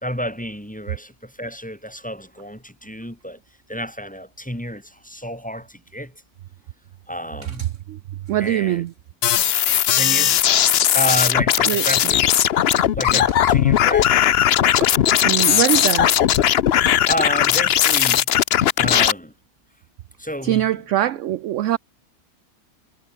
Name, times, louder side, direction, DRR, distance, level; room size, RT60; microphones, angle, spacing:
voice 1, 0.0-3.4 3.7-6.1 7.1-7.7 8.4-8.8 9.9-10.4 10.9-12.2 12.9-14.1 17.1-18.3 18.8-19.3 20.2-20.8 21.1-21.2, equal, 5° left, 2.6 m, -30 dB
voice 2, 8.3-8.9 11.7-11.8 14.8-14.9 15.2-16.1 20.4-21.8, right 13 dB, 70° right, 0.8 m, -22 dB
sound 1, 9.2-19.1, left 10 dB, 55° left, 0.7 m, -18 dB
omnidirectional pair, 1.6 m